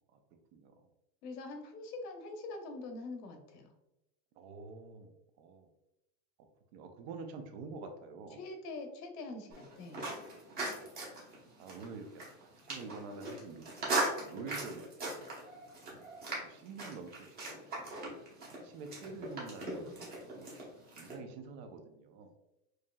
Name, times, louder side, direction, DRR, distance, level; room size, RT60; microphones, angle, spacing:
voice 1, 0.5-0.9 4.4-5.7 6.7-8.4 10.5-10.8 11.6-15.2 15.8-15.9 16.4-18.0 18.5-20.5 21.0-22.3, right 4 dB, 45° right, 6 dB, 0.5 m, -48 dB
voice 2, 1.2-3.7 8.4-10.0 19.6-19.7, left 3 dB, 75° left, 4 dB, 0.9 m, -44 dB
sound 1, 9.5-21.2, right 2 dB, 20° right, 0.9 m, -40 dB
4.7 x 2.7 x 2.2 m, 0.90 s
supercardioid pair, 155°, 48 cm